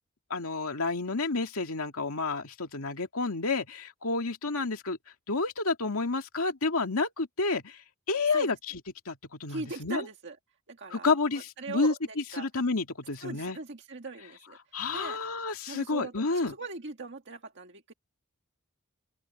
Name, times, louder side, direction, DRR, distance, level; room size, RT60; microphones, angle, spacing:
voice 1, 0.3-5.0 5.3-7.8 8.1-8.8 9.1-10.0 10.9-11.9 12.4-13.6 14.7-16.5, left 3 dB, 80° left, 2.2 m, -30 dB
voice 2, 9.5-10.4 10.7-12.5 13.2-15.2 15.7-17.9, right 3 dB, 55° right, 1.8 m, -40 dB
open air
head